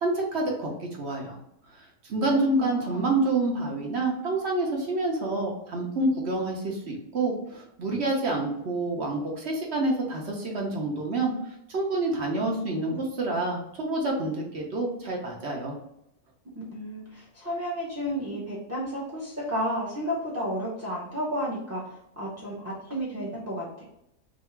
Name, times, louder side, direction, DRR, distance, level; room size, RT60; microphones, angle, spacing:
voice 1, 0.0-1.3 2.1-11.3 11.7-15.7, right 2 dB, 50° right, -1 dB, 0.9 m, -28 dB
voice 2, 16.5-23.7, equal, 15° right, -7 dB, 0.7 m, -32 dB
2.8 x 2.7 x 4.3 m, 0.80 s
omnidirectional pair, 1.7 m